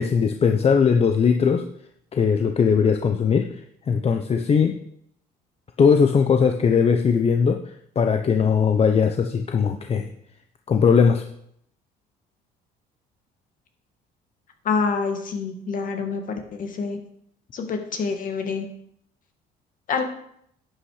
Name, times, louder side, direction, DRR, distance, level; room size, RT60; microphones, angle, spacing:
voice 1, 0.0-1.6 2.1-3.5 3.9-4.8 5.8-7.6 8.0-10.1 10.7-11.2, left 6 dB, 35° left, 5 dB, 0.9 m, -19 dB
voice 2, 14.6-17.0 17.5-18.7 19.9-20.0, left 5 dB, 55° left, 4 dB, 2.3 m, -26 dB
11.5 x 8.7 x 5.0 m, 0.71 s
cardioid pair, 110°, 17 cm